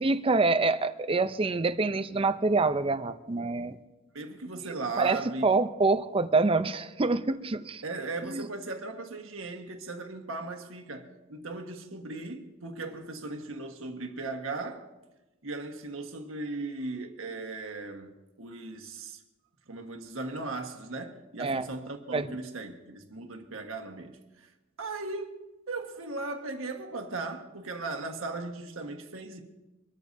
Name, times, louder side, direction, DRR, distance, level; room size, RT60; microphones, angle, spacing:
voice 1, 0.0-3.8 5.0-7.8 8.2-8.5 21.4-21.7 22.1-22.3, right 3 dB, 25° right, 0.6 m, -26 dB
voice 2, 4.1-5.5 7.8-14.9 15.4-19.2 19.7-24.5 24.8-25.3 25.7-29.4, right 3 dB, 80° right, 1.5 m, -37 dB
24.0 x 13.5 x 2.7 m
head